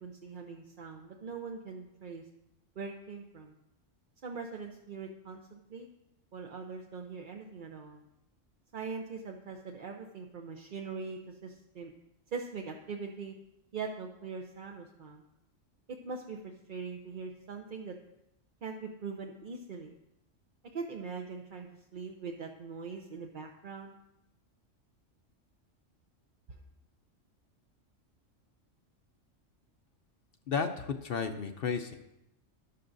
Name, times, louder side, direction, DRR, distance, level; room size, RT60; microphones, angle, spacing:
voice 1, 0.0-2.2 2.8-3.5 4.2-5.9 6.3-8.0 8.7-11.9 12.3-13.3 13.7-15.2 16.0-17.9 18.6-19.9 20.7-24.0, right 5 dB, 45° right, 2 dB, 0.8 m, -42 dB
voice 2, 30.5-31.9, left 6 dB, 55° left, 7 dB, 0.7 m, -33 dB
13.5 x 11.0 x 2.6 m, 0.88 s
omnidirectional pair, 1.3 m